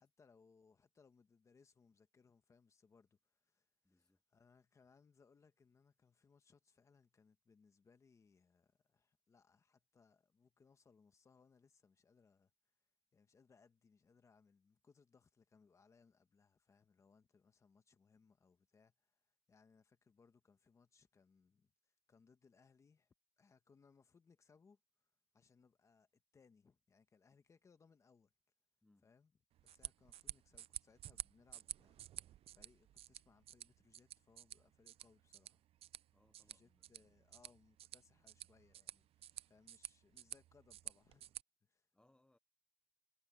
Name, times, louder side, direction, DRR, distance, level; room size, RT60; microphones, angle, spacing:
voice 1, 0.0-12.5 13.1-19.2 19.5-24.8 25.3-28.3 29.0-29.3 29.6-35.6 36.5-41.3 41.6-41.9, left 5 dB, 30° left, 1.2 m, -70 dB
voice 2, 3.8-4.2 28.8-29.1 36.1-37.2 41.9-42.4, left 2 dB, 10° left, 0.5 m, -75 dB
sound 1, 29.5-41.4, right 12 dB, 80° right, 0.4 m, -52 dB
wide cardioid pair, 180°, 10 cm